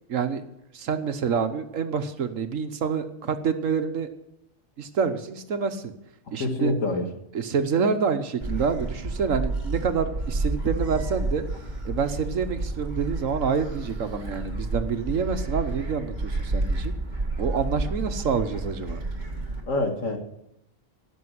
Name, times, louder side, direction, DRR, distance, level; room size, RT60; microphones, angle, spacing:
voice 1, 0.1-0.4 0.7-4.1 4.8-5.9 6.3-6.7 7.3-11.4 11.8-16.9 17.4-19.0, right 6 dB, 80° right, 9 dB, 1.5 m, -27 dB
voice 2, 6.3-7.1 19.7-20.2, left 2 dB, 80° left, 4 dB, 2.3 m, -26 dB
Gull seagull, 8.4-19.6, right 2 dB, 35° right, 2.3 m, -30 dB
16.5 x 6.8 x 7.9 m, 0.81 s
omnidirectional pair, 1.3 m